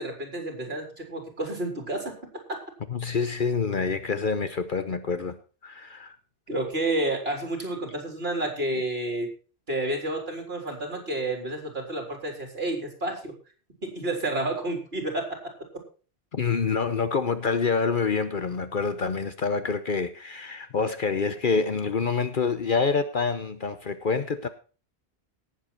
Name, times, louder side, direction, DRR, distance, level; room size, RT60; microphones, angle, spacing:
voice 1, 0.0-2.1 6.5-9.3 9.7-13.3 13.8-15.3, right 1 dB, 65° right, 4.2 m, -30 dB
voice 2, 2.9-5.4 5.6-6.2 16.3-24.5, left 5 dB, 55° left, 1.0 m, -27 dB
18.0 x 7.5 x 4.3 m
omnidirectional pair, 1.1 m